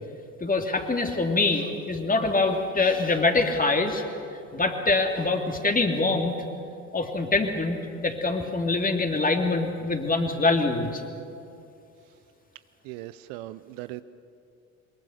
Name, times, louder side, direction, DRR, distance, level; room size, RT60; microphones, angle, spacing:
voice 1, 0.4-4.0 4.5-6.3 6.9-11.0, left 3 dB, 20° left, 4 dB, 3.0 m, -24 dB
voice 2, 12.8-14.0, right 16 dB, 65° right, 14 dB, 0.8 m, -38 dB
23.0 x 22.5 x 6.6 m, 2.6 s
figure-of-eight pair, 55°, 41 cm